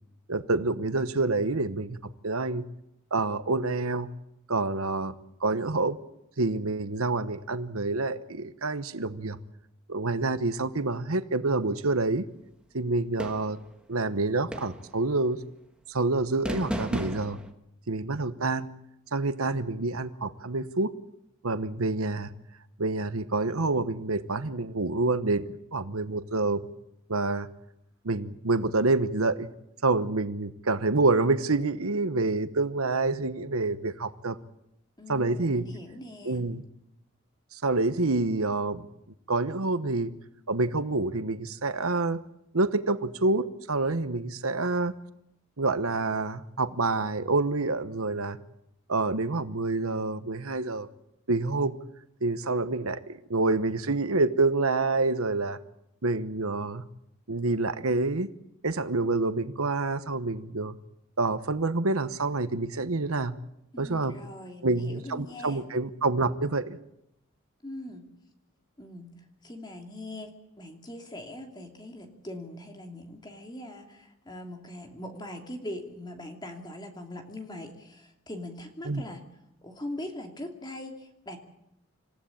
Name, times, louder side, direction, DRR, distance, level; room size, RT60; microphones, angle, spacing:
voice 1, 0.3-2.0 2.2-2.6 3.1-4.1 4.5-5.1 5.4-6.0 6.4-9.4 9.9-12.3 12.7-13.6 13.9-15.4 15.9-17.4 17.9-18.7 19.1-20.9 21.4-22.3 22.8-26.7 27.1-27.5 28.0-29.5 29.8-34.4 35.1-35.7 36.2-36.6 37.5-38.9 39.3-40.1 40.5-42.2 42.5-44.9 45.6-48.4 48.9-50.9 51.3-51.7 52.2-55.6 56.0-56.8 57.3-58.3 58.6-60.8 61.2-63.3 63.8-64.2 64.6-66.8 78.8-79.0, right 3 dB, 90° right, 11 dB, 1.1 m, -27 dB
sound 1, 13.2-13.7 14.5-15.0 16.4-17.5, equal, 5° right, 1.6 m, -33 dB
voice 2, 35.0-36.4 63.7-65.7 67.6-68.1 68.8-79.3 79.6-81.4, left 1 dB, 20° left, 4 dB, 2.8 m, -41 dB
27.0 x 15.5 x 8.7 m, 0.80 s
head